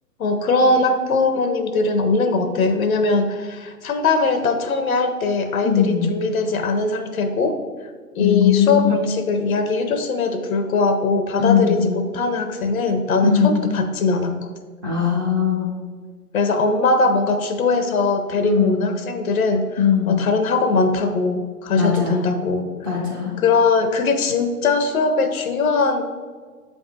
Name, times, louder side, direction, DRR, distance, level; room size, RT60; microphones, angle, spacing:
voice 1, 0.2-7.6 8.1-14.4 16.3-22.7 23.4-26.0, left 3 dB, 60° left, 7 dB, 0.7 m, -20 dB
voice 2, 5.6-6.1 8.2-8.9 11.4-11.8 13.2-13.6 14.8-15.8 18.4-18.9 19.8-20.2 21.8-22.2 22.8-23.3, left 8 dB, 15° right, -4 dB, 0.5 m, -19 dB
7.4 x 3.5 x 4.0 m, 1.5 s
hypercardioid pair, 135°, 47 cm